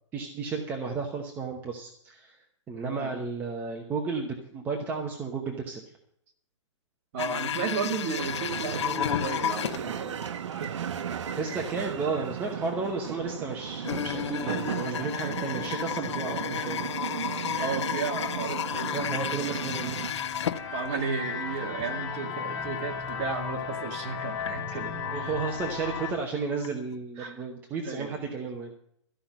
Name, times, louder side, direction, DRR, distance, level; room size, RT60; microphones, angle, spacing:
voice 1, 0.1-6.0 11.4-16.9 18.8-20.0 25.1-28.7, right 4 dB, 10° right, 1 dB, 1.0 m, -33 dB
voice 2, 2.8-3.1 7.1-10.2 16.2-16.7 17.6-19.2 19.5-19.7 20.7-25.4 27.2-27.4 27.8-28.2, right 5 dB, 30° right, 2 dB, 2.1 m, -34 dB
sound 1, 7.2-10.3 10.6-10.7 11.1-11.2 11.9-12.0 13.8-21.2 21.5-21.6 22.3-22.4 22.9-23.1 23.5-24.5 25.0-25.4 26.6-26.7 26.9-27.0, left 9 dB, 65° left, 1.0 m, -32 dB
sound 2, 8.2-20.1, right 8 dB, 75° right, 0.9 m, -36 dB
sound 3, 18.0-26.1, left 6 dB, 45° left, 3.4 m, -36 dB
14.0 x 5.8 x 9.2 m, 0.68 s
hypercardioid pair, 165°, 16 cm